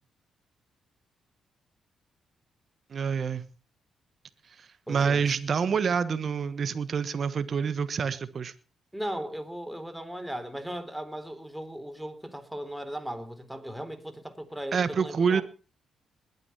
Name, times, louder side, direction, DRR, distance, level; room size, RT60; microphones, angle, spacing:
voice 1, 2.9-3.4 4.6-8.5 14.7-15.4, right 6 dB, 55° right, 13 dB, 1.2 m, -27 dB
voice 2, 4.9-5.2 8.9-15.4, equal, 5° right, 8 dB, 3.7 m, -37 dB
20.5 x 9.6 x 5.7 m, 0.36 s
hypercardioid pair, 45°, 0 cm